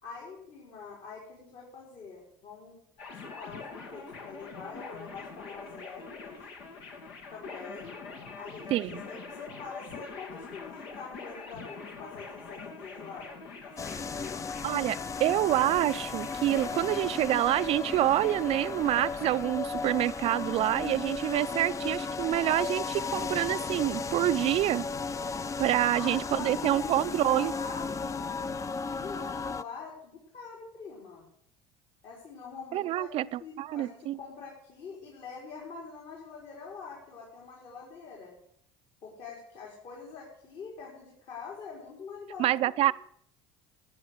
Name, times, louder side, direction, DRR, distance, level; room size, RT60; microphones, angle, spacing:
voice 1, 0.0-2.8 3.2-6.4 7.3-7.9 8.3-8.8 9.0-13.3 13.6-14.4 25.9-31.2 32.0-38.3 39.0-42.9, left 5 dB, 60° left, -2 dB, 4.5 m, -45 dB
sound 1, 3.0-19.5, left 4 dB, 90° left, 2.7 m, -44 dB
voice 2, 8.7-9.0 14.6-24.8 25.6-27.5 32.7-34.2 42.4-42.9, right 14 dB, 55° right, 14 dB, 0.4 m, -27 dB
sound 2, 13.8-29.6, left 4 dB, 25° left, 0.5 m, -35 dB
15.5 x 8.5 x 6.6 m, 0.70 s
supercardioid pair, 90°, 12 cm